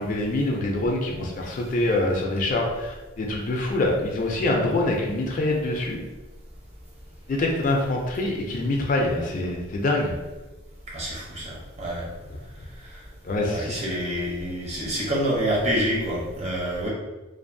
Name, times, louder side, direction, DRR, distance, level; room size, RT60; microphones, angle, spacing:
voice 1, 0.0-6.0 7.3-10.1 13.2-13.8, left 2 dB, 40° left, 0 dB, 0.4 m, -25 dB
voice 2, 10.9-12.1 12.9-13.0 13.5-16.9, equal, 35° right, -4 dB, 0.7 m, -27 dB
2.5 x 2.4 x 2.6 m, 1.1 s
head